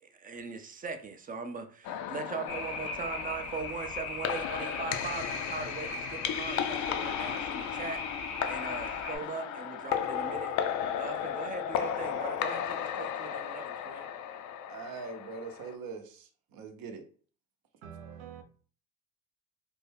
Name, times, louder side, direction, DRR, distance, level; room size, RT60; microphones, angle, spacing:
voice 1, 0.0-8.0 8.4-10.5 11.0-14.1, right 5 dB, 20° right, 0.5 m, -40 dB
sound 1, 1.8-15.7, left 9 dB, 50° left, 0.4 m, -35 dB
sound 2, 2.5-9.2, left 3 dB, 85° left, 1.0 m, -39 dB
voice 2, 14.7-17.1, right 4 dB, 55° right, 0.8 m, -42 dB
voice 3, 17.8-18.4, right 8 dB, 85° right, 0.6 m, -45 dB
2.6 x 2.2 x 3.3 m
hypercardioid pair, 75°, 40 cm